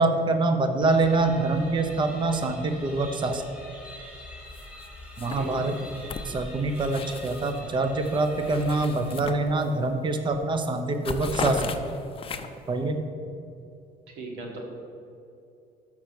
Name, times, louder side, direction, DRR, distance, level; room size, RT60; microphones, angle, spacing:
voice 1, 0.0-3.4 5.2-5.8 6.2-11.7 12.7-13.0, right 3 dB, 30° right, 7 dB, 0.7 m, -25 dB
sound 1, 0.8-9.5, left 2 dB, 5° right, 1.7 m, -44 dB
sound 2, 4.5-4.9 5.2-7.6 8.0-9.9 10.3-10.5 10.8-12.7, left 5 dB, 35° left, 0.5 m, -36 dB
voice 2, 5.3-5.7 14.2-14.6, right 2 dB, 90° right, 0 dB, 1.6 m, -36 dB
6.3 x 5.9 x 5.9 m, 2.6 s
cardioid pair, 110°, 17 cm